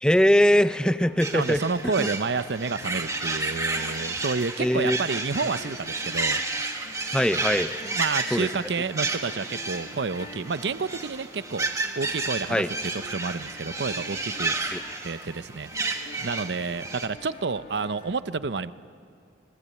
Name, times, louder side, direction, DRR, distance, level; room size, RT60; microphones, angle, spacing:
voice 1, 0.0-2.1 4.6-5.0 7.1-7.7 8.3-8.5 12.5-12.7 14.7-14.8, equal, 5° left, 12 dB, 0.5 m, -22 dB
sound 1, 1.0-18.1, left 1 dB, 50° left, 4.3 m, -48 dB
sound 2, 1.2-17.1, right 3 dB, 20° right, 1.6 m, -31 dB
voice 2, 1.3-6.4 7.8-11.7 12.0-12.6 13.1-14.5 15.0-18.7, right 4 dB, 70° right, 14 dB, 0.7 m, -30 dB
26.0 x 21.0 x 8.4 m, 2.5 s
head